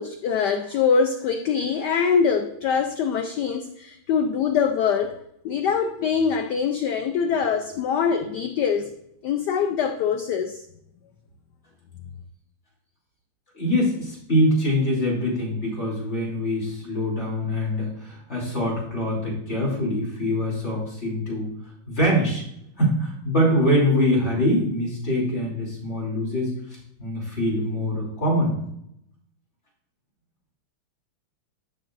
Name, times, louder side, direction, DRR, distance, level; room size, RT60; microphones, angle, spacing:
voice 1, 0.0-5.2 5.4-8.9 9.2-10.6, left 6 dB, 85° left, 0.9 m, -23 dB
voice 2, 13.5-21.5 21.9-22.4 22.8-26.5 27.0-28.6, equal, 30° left, 3.0 m, -24 dB
11.5 x 6.2 x 2.5 m
omnidirectional pair, 2.4 m